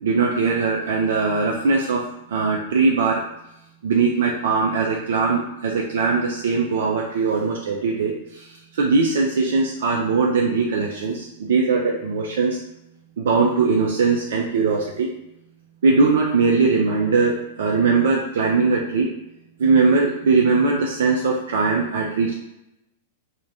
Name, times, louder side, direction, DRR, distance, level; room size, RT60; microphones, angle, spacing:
voice 1, 0.0-3.2 3.8-12.6 13.2-15.1 15.8-19.1 19.6-22.3, right 4 dB, 60° right, -1 dB, 0.3 m, -20 dB
2.5 x 2.2 x 3.3 m, 0.88 s
figure-of-eight pair, 95°, 0 cm